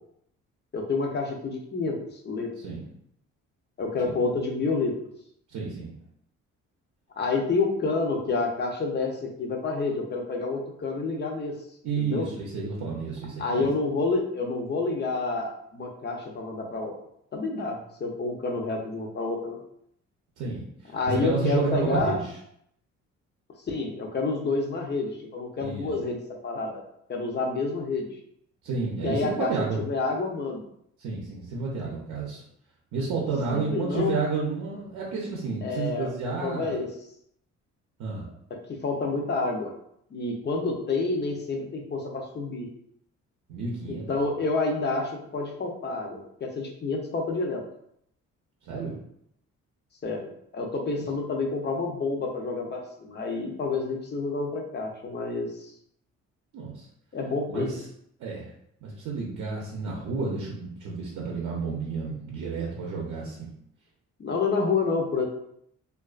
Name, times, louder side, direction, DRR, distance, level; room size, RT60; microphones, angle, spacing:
voice 1, 0.7-2.5 3.8-4.9 7.2-11.5 12.0-12.3 13.4-16.9 17.3-19.6 20.9-22.2 23.7-26.8 27.1-28.1 29.0-29.5 29.8-30.6 33.5-34.1 35.6-36.1 36.4-36.9 38.7-39.7 40.1-42.7 43.9-47.6 50.0-55.7 57.1-57.7 64.2-65.3, left 3 dB, 35° left, 1 dB, 0.5 m, -29 dB
voice 2, 5.5-6.0 11.8-13.7 20.4-22.2 25.6-25.9 28.6-29.8 31.0-32.4 32.9-36.8 38.0-38.3 43.5-44.3 48.6-49.0 50.9-51.0 56.5-56.9 57.5-57.8 58.2-58.5 58.8-63.5, right 4 dB, 75° right, -3 dB, 0.6 m, -31 dB
2.3 x 2.3 x 2.3 m, 0.72 s
cardioid pair, 90°, 30 cm